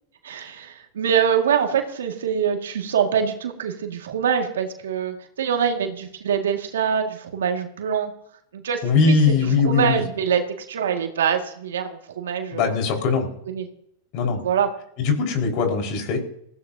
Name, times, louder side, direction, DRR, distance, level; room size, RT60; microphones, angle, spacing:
voice 1, 0.2-8.1 8.5-12.8 13.5-13.7 14.4-14.7, right 7 dB, 85° right, 4 dB, 2.0 m, -24 dB
voice 2, 8.8-10.0 12.5-13.3 14.1-14.4 15.0-16.2, left 4 dB, 55° left, 3 dB, 4.7 m, -20 dB
20.5 x 16.0 x 2.8 m, 0.71 s
hypercardioid pair, 110°, 0 cm